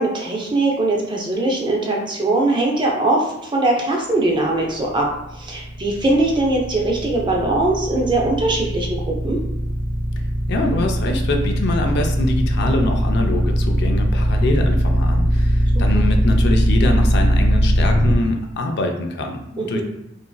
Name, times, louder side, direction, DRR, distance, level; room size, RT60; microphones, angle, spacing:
voice 1, 0.0-9.4 19.6-19.8, right 2 dB, 25° right, -1 dB, 0.5 m, -21 dB
sound 1, 4.9-18.2, right 1 dB, 65° right, 0.7 m, -19 dB
voice 2, 10.5-19.8, left 2 dB, 55° left, 3 dB, 0.4 m, -24 dB
2.9 x 2.5 x 2.3 m, 0.83 s
head